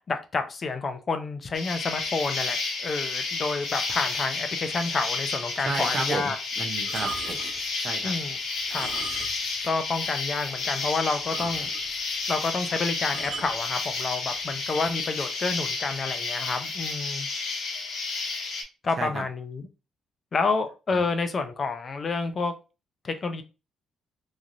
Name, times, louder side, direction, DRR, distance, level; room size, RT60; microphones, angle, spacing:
voice 1, 0.1-6.4 8.0-8.4 8.7-8.9 9.6-11.7 12.3-17.3 18.8-19.7 20.3-22.5 23.0-23.4, left 4 dB, 40° left, 8 dB, 0.5 m, -29 dB
Insect, 1.5-18.6, left 4 dB, 75° left, 1.0 m, -31 dB
voice 2, 5.5-7.4 7.8-8.1 19.0-19.2 20.9-21.0, right 4 dB, 45° right, 5 dB, 0.6 m, -33 dB
sound 1, 6.8-7.6 8.6-9.6 9.8-10.0 10.5-10.6 10.8-10.9 11.3-12.0 13.1-13.6 14.4-14.7, right 4 dB, 85° right, 0.8 m, -38 dB
3.0 x 2.5 x 2.5 m, 0.30 s
cardioid pair, 90°, 0 cm